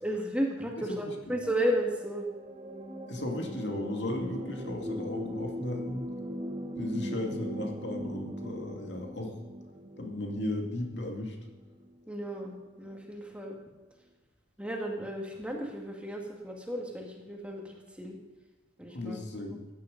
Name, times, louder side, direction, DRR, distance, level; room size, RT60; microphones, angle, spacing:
voice 1, 0.0-2.3 12.1-13.6 14.6-18.2 18.8-19.2, equal, 5° right, 0 dB, 2.0 m, -33 dB
sound 1, 1.3-12.1 12.9-13.0, equal, 35° right, 1.3 m, -40 dB
voice 2, 3.1-6.1 6.8-9.3 10.0-11.4 18.9-19.6, left 1 dB, 65° left, 2 dB, 2.4 m, -35 dB
15.5 x 10.5 x 5.2 m, 1.3 s
head